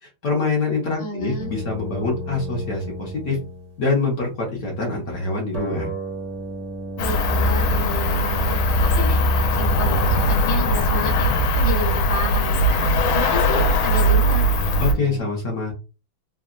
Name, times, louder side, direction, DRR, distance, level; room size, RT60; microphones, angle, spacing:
voice 1, 0.0-3.4 3.8-5.9 14.8-15.7, left 3 dB, 60° left, -2 dB, 1.0 m, -25 dB
voice 2, 1.0-1.5 7.0-9.2 9.6-14.4, left 1 dB, 20° left, -3 dB, 0.4 m, -31 dB
sound 1, 1.4-3.9 5.5-11.8 13.5-15.2, equal, 70° right, 0.3 m, -34 dB
Cricket, 7.0-14.9, equal, 90° left, 1.4 m, -19 dB
3.5 x 2.0 x 2.4 m, 0.31 s
omnidirectional pair, 2.2 m